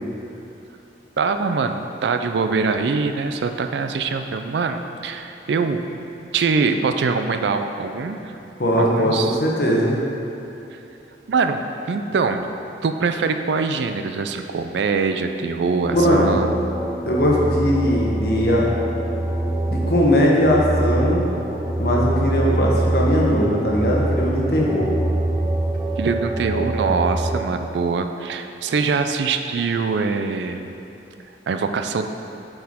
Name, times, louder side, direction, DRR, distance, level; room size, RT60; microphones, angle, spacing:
voice 1, 1.2-5.8 6.3-8.3 8.8-9.4 10.7-10.8 11.3-12.5 12.8-16.6 26.0-30.7 31.5-32.1, right 4 dB, 75° right, 7 dB, 0.4 m, -23 dB
voice 2, 8.6-10.0 15.9-16.3 17.1-18.7 19.7-21.3 21.8-24.9, equal, 55° left, -3 dB, 1.0 m, -19 dB
sound 1, 15.8-27.4, right 1 dB, 15° right, 0.4 m, -24 dB
7.5 x 4.7 x 3.6 m, 3.0 s
head